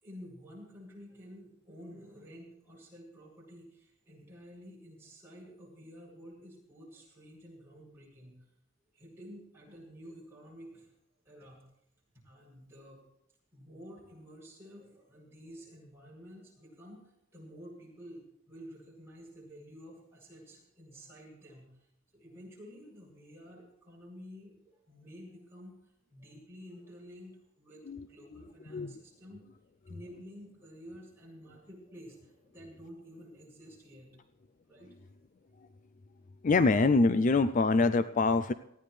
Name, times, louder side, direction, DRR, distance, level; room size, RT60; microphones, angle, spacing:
voice 1, 0.0-8.4 8.9-10.9 11.2-11.7 12.1-13.0 13.5-29.5 29.9-34.2 34.7-35.1, equal, 10° right, -5 dB, 7.7 m, -51 dB
voice 2, 36.4-38.5, left 3 dB, 40° left, 12 dB, 0.4 m, -25 dB
19.0 x 15.0 x 3.3 m, 0.79 s
head